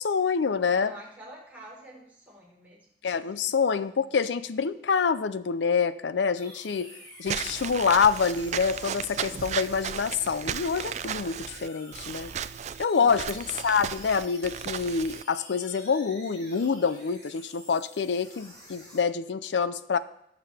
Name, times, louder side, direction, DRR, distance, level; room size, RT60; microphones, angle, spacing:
voice 1, 0.0-0.9 3.0-6.9 7.2-12.3 12.8-20.0, left 5 dB, 80° left, 15 dB, 0.5 m, -26 dB
voice 2, 0.7-2.8 3.2-3.4 12.9-13.4, right 1 dB, 10° right, -6 dB, 4.3 m, -48 dB
sound 1, 6.3-19.0, equal, 25° left, 4.8 m, -49 dB
Walk footsteps / Squeak, 7.3-15.2, right 8 dB, 40° right, 0.3 m, -35 dB
18.0 x 6.8 x 3.4 m, 0.78 s
head